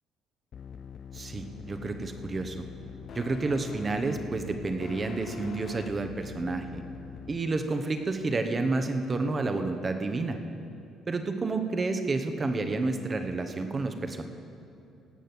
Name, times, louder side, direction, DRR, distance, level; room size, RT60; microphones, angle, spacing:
sound 1, 0.5-7.4, left 7 dB, 55° left, 0.5 m, -43 dB
voice 1, 1.1-2.6 3.1-6.8 7.3-10.4 11.1-14.2, right 3 dB, 30° right, 7 dB, 1.2 m, -30 dB
17.5 x 6.4 x 7.9 m, 2.7 s
cardioid pair, 100°, 0 cm